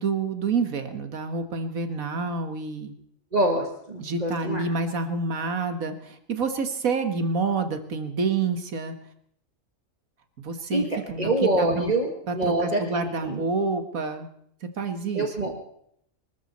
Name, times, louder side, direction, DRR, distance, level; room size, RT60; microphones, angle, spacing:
voice 1, 0.0-2.9 4.0-8.9 10.4-11.3 11.6-11.9 12.3-14.3 14.8-15.3, right 4 dB, 90° right, 8 dB, 1.9 m, -28 dB
voice 2, 3.3-4.6 10.7-12.1 12.3-13.4 15.1-15.6, right 1 dB, 30° right, 1 dB, 1.9 m, -25 dB
25.0 x 13.5 x 4.2 m, 0.69 s
omnidirectional pair, 1.4 m